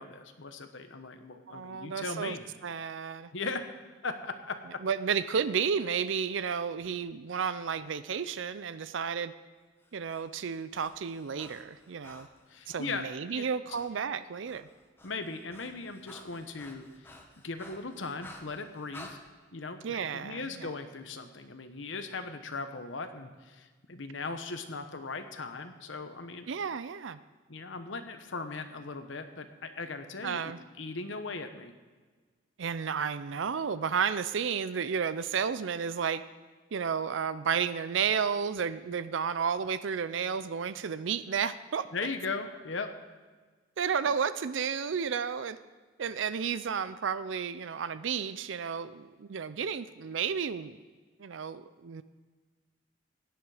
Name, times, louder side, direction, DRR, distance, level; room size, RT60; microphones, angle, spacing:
voice 1, 0.0-2.4 3.3-3.7 4.0-4.6 12.5-13.8 15.0-17.2 17.4-19.2 19.5-26.5 27.5-30.4 30.8-31.7 41.9-42.9, left 3 dB, 75° left, 7 dB, 1.0 m, -38 dB
voice 2, 1.5-2.3 2.6-3.3 4.8-9.3 9.9-12.3 12.7-14.7 19.8-20.7 26.5-27.2 30.2-30.6 32.6-36.2 36.7-41.9 43.8-45.6 46.0-50.8 51.2-52.0, right 6 dB, 75° right, 14 dB, 0.5 m, -32 dB
Breathing, 9.8-13.0 13.7-13.9 14.2-19.2, left 2 dB, 10° left, 1.2 m, -52 dB
17.0 x 10.5 x 4.9 m, 1.4 s
head